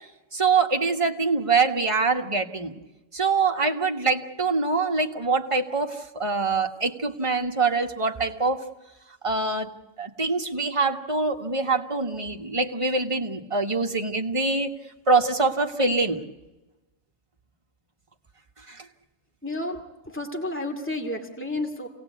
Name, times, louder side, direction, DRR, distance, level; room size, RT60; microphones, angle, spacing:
voice 1, 0.3-2.8 3.1-8.6 9.2-9.7 10.0-14.7 15.1-16.2 18.7-18.9, right 4 dB, 25° right, 3 dB, 1.4 m, -24 dB
voice 2, 19.4-21.9, left 1 dB, 10° left, 3 dB, 2.3 m, -31 dB
28.0 x 18.5 x 8.4 m, 1.1 s
omnidirectional pair, 1.4 m